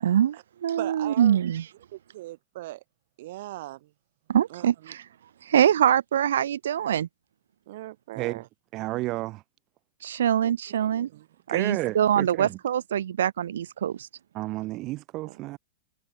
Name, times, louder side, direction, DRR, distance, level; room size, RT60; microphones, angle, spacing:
voice 1, 0.0-1.6 4.3-5.0 5.4-7.1 10.0-11.1 11.5-14.1, right 10 dB, 80° right, 1.4 m, -24 dB
voice 2, 0.8-1.4 1.9-2.8 3.2-3.9 4.5-4.9 7.7-8.5 10.4-11.3 15.2-15.4, right 16 dB, 65° right, 6.8 m, -40 dB
voice 3, 8.7-9.4 11.5-12.6 14.3-15.6, right 19 dB, 40° right, 1.8 m, -31 dB
hypercardioid pair, 120°, 0 cm